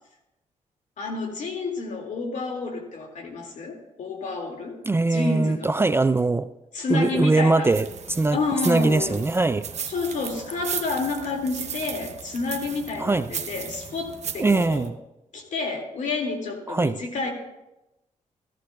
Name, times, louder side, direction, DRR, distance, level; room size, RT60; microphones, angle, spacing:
voice 1, 1.0-4.8 5.1-5.8 6.7-7.7 8.3-9.2 9.9-14.9 15.3-17.3, left 3 dB, 65° left, 2 dB, 2.2 m, -29 dB
voice 2, 4.8-6.5 6.9-9.7 13.0-13.3 14.4-14.9 16.7-17.0, right 3 dB, 20° right, 13 dB, 0.3 m, -22 dB
sound 1, 7.7-14.9, right 7 dB, 55° right, 0.9 m, -36 dB
14.5 x 14.5 x 2.3 m, 0.95 s
cardioid pair, 85°, 13 cm